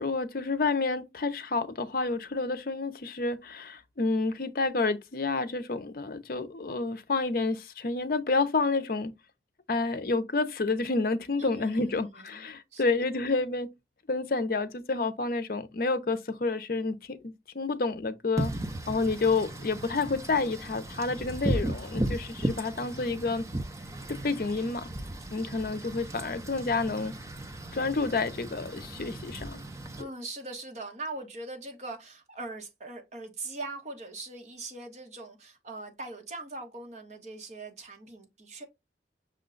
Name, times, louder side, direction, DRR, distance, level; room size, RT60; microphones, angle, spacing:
voice 1, 0.0-9.1 9.7-13.7 14.1-18.5 18.9-23.4 24.1-24.9 25.3-27.1 27.7-29.6 30.0-30.1, left 3 dB, 55° left, 0.5 m, -29 dB
voice 2, 11.4-12.8 30.0-38.6, right 2 dB, 40° right, 1.1 m, -41 dB
Wind / Rain, 18.4-30.0, right 1 dB, 15° right, 0.5 m, -36 dB
6.1 x 2.2 x 3.8 m
head